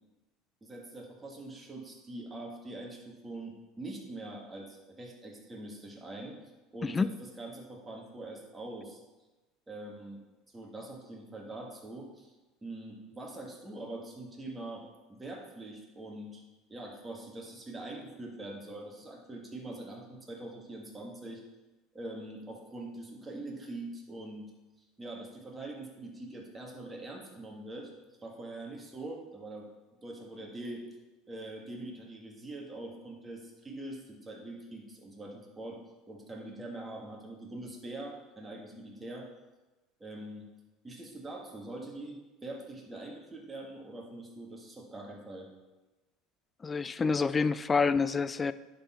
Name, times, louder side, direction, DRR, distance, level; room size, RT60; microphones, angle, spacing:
voice 1, 0.6-6.4 6.7-7.1 7.4-9.0 9.7-10.2 10.5-12.3 12.6-14.8 15.1-16.4 16.7-21.4 21.9-24.5 25.0-27.9 28.2-29.7 30.0-30.8 31.3-35.8 36.1-39.3 40.0-40.5 40.8-45.5, right 2 dB, 15° right, 0 dB, 1.9 m, -43 dB
voice 2, 46.6-48.5, left 4 dB, 25° left, 15 dB, 0.3 m, -27 dB
10.5 x 4.2 x 4.4 m, 1.1 s
hypercardioid pair, 90°, 0 cm